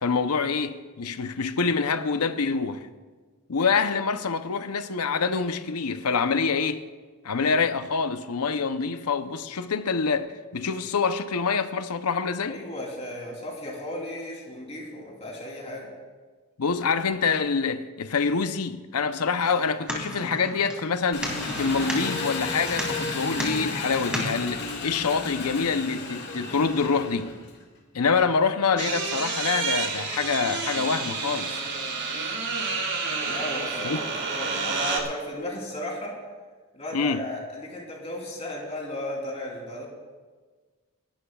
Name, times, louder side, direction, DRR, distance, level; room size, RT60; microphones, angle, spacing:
voice 1, 0.0-2.9 3.5-6.8 7.2-10.3 10.5-12.6 16.6-27.3 27.9-31.6 33.8-34.0 36.9-37.3, left 5 dB, 85° left, 0.7 m, -26 dB
voice 2, 12.5-15.9 33.3-36.1 36.7-39.9, left 1 dB, 30° left, 3.4 m, -35 dB
sound 1, 19.4-24.4, equal, 5° right, 2.4 m, -34 dB
Engine, 21.1-27.6, left 3 dB, 50° left, 2.0 m, -33 dB
sound 2, 28.8-35.0, right 4 dB, 55° right, 1.9 m, -29 dB
27.0 x 11.5 x 2.4 m
head